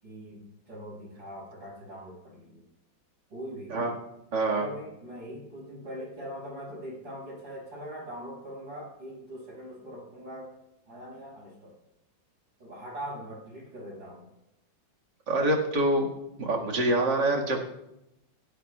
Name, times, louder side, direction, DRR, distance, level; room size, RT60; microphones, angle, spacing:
voice 1, 0.0-2.6 3.3-3.8 4.5-10.5 10.9-11.7 12.6-14.3, equal, 90° right, -5 dB, 7.2 m, -42 dB
voice 2, 4.3-4.7 15.3-16.1 16.4-17.6, right 1 dB, 65° right, -1 dB, 2.6 m, -25 dB
18.0 x 16.5 x 2.4 m, 0.88 s
omnidirectional pair, 2.1 m